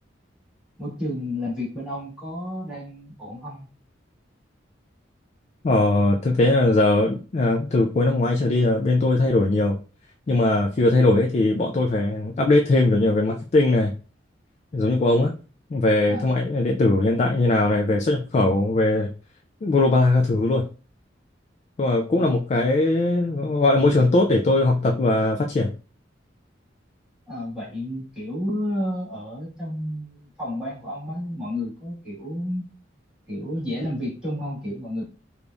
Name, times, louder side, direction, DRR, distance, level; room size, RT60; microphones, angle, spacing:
voice 1, 0.8-3.7 16.1-16.3 22.1-22.3 27.3-32.7 33.3-35.0, left 1 dB, 5° right, -8 dB, 1.9 m, -31 dB
voice 2, 5.6-9.8 10.3-13.9 14.7-15.3 15.7-19.1 19.6-20.7 21.8-25.7, left 2 dB, 35° left, 2 dB, 0.4 m, -20 dB
5.0 x 2.3 x 2.5 m, 0.35 s
head